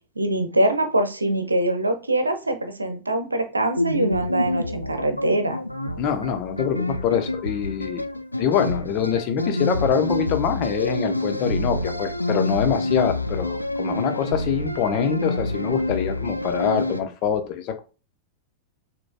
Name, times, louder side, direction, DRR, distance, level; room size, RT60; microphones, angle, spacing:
voice 1, 0.2-5.6, right 1 dB, 80° right, 7 dB, 0.8 m, -23 dB
sound 1, 3.7-17.0, left 1 dB, 85° left, 0.4 m, -27 dB
voice 2, 6.0-8.0 8.4-17.8, left 8 dB, 40° left, 6 dB, 0.8 m, -25 dB
6.2 x 3.0 x 2.2 m, 0.32 s
figure-of-eight pair, 90°, 0 cm